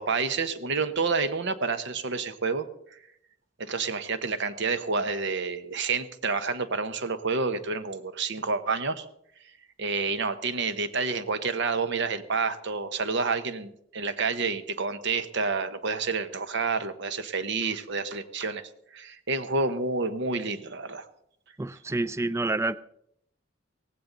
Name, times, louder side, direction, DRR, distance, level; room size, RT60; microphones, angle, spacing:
voice 1, 0.0-2.7 3.6-9.0 9.8-21.1, right 4 dB, 65° right, 11 dB, 1.1 m, -29 dB
voice 2, 21.6-22.8, right 2 dB, 15° right, 16 dB, 0.4 m, -28 dB
17.5 x 15.5 x 4.0 m, 0.74 s
head